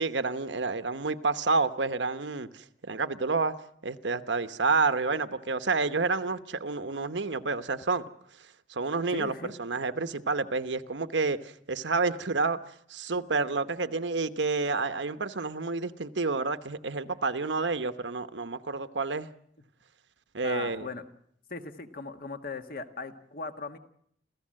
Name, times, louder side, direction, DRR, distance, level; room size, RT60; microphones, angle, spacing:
voice 1, 0.0-3.5 3.8-8.1 8.7-12.6 12.9-19.3 20.3-20.9, right 4 dB, 80° right, 1.0 m, -29 dB
voice 2, 9.1-9.5 20.4-21.0 21.5-23.8, left 3 dB, 50° left, 1.5 m, -38 dB
28.0 x 15.5 x 7.6 m
head